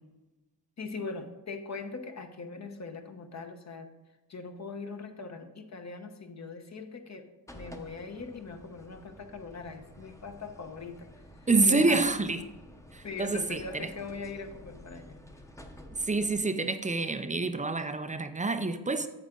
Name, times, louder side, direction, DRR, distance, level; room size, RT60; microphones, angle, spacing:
voice 1, 0.8-3.9 4.3-11.2 11.6-12.0 13.0-15.2, left 4 dB, 40° left, 6 dB, 1.0 m, -41 dB
sound 1, 7.5-16.4, left 1 dB, 5° left, 0.9 m, -51 dB
voice 2, 11.5-12.4 12.9-13.9 16.0-19.1, right 3 dB, 20° right, 9 dB, 0.5 m, -27 dB
9.4 x 7.3 x 3.8 m, 1.1 s
cardioid pair, 100°, 41 cm